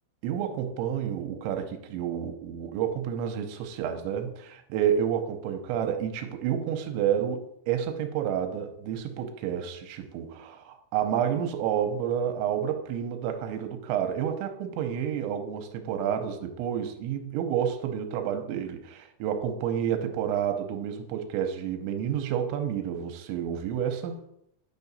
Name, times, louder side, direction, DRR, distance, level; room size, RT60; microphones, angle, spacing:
voice 1, 0.2-24.2, right 9 dB, 85° right, 6 dB, 2.9 m, -30 dB
9.2 x 4.9 x 4.1 m, 0.75 s
omnidirectional pair, 5.5 m